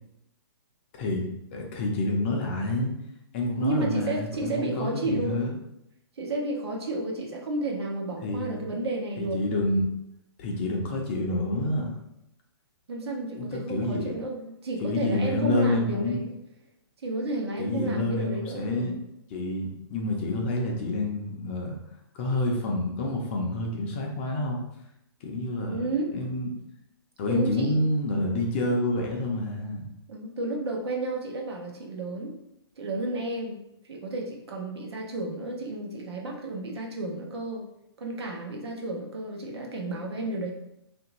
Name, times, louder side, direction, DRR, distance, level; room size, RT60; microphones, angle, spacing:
voice 1, 0.9-2.9 3.3-5.5 8.2-8.6 9.2-9.9 10.4-11.9 13.4-14.1 14.8-16.2 17.6-19.0 19.3-21.8 22.1-24.6 25.2-26.5 27.2-29.9, left 2 dB, 25° left, 0 dB, 0.5 m, -28 dB
voice 2, 3.6-5.4 6.2-9.4 12.9-16.3 17.0-19.0 25.7-26.1 27.3-27.8 30.1-32.3 32.8-33.6 33.9-37.6 38.0-40.5, right 2 dB, 75° right, 0 dB, 0.9 m, -32 dB
2.9 x 2.5 x 2.9 m, 0.81 s
hypercardioid pair, 165°, 14 cm